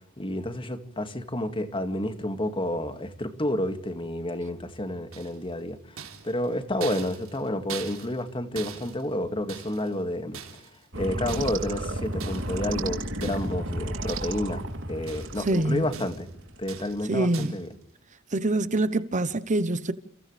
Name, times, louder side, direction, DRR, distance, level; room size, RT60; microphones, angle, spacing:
voice 1, 0.2-5.8 6.2-10.4 10.9-14.6 14.9-16.3 16.6-17.7, left 1 dB, 25° left, 2.1 m, -30 dB
sound 1, 5.1-5.6 6.0-8.3 8.5-10.0 10.3-10.9 11.3-11.8 12.2-12.6 13.2-13.7 14.1-14.6 14.8-15.5 15.9-16.3 16.7-17.0 17.3-17.7, right 7 dB, 85° right, 3.7 m, -42 dB
sound 2, 10.9-16.9, right 1 dB, 65° right, 3.5 m, -33 dB
voice 2, 15.4-15.9 17.0-17.6 18.3-19.9, right 2 dB, 35° right, 0.9 m, -25 dB
30.0 x 29.0 x 3.4 m
head